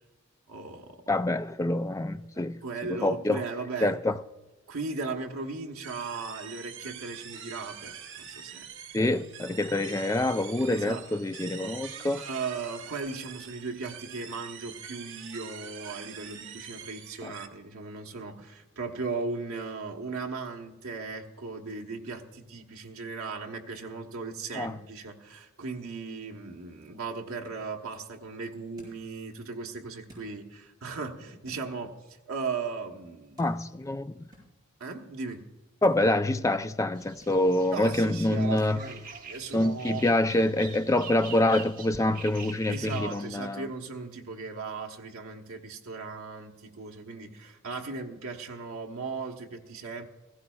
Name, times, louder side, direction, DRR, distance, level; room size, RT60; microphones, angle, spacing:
voice 1, 0.5-1.0 2.6-4.0 4.7-8.7 10.7-11.0 12.2-33.5 34.8-35.4 37.7-40.0 42.7-50.0, right 4 dB, 75° right, 1.2 m, -37 dB
voice 2, 1.1-2.6 2.9-3.4 3.8-4.2 8.9-12.2 17.2-17.3 24.5-24.7 33.4-34.3 35.8-38.8 39.5-43.7, left 1 dB, 15° left, 0.3 m, -26 dB
sound 1, 5.8-17.5, right 8 dB, 55° right, 0.9 m, -45 dB
sound 2, 27.2-38.8, equal, 20° right, 5.1 m, -61 dB
sound 3, 37.0-43.3, right 5 dB, 40° right, 1.4 m, -46 dB
16.5 x 15.5 x 2.4 m
head